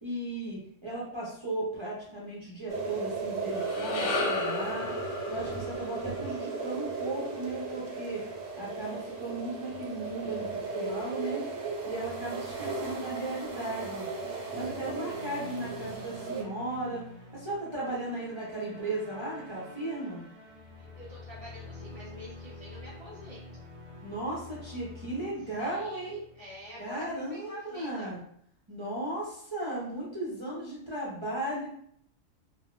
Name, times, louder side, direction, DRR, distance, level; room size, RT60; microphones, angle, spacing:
voice 1, 0.0-4.9 5.3-8.2 8.6-11.5 11.9-14.1 14.5-17.0 17.3-20.2 24.0-26.2 26.8-28.2 28.7-31.7, right 2 dB, 30° right, -7 dB, 0.6 m, -36 dB
sound 1, 2.7-16.4, right 4 dB, 70° right, 1.0 m, -36 dB
sound 2, 3.3-7.8, left 3 dB, 65° left, 0.9 m, -36 dB
sound 3, 14.5-27.0, left 1 dB, 85° right, 1.3 m, -47 dB
voice 2, 20.8-23.6 25.6-28.1, left 1 dB, 50° left, -6 dB, 0.4 m, -47 dB
2.9 x 2.1 x 2.9 m, 0.67 s
omnidirectional pair, 1.4 m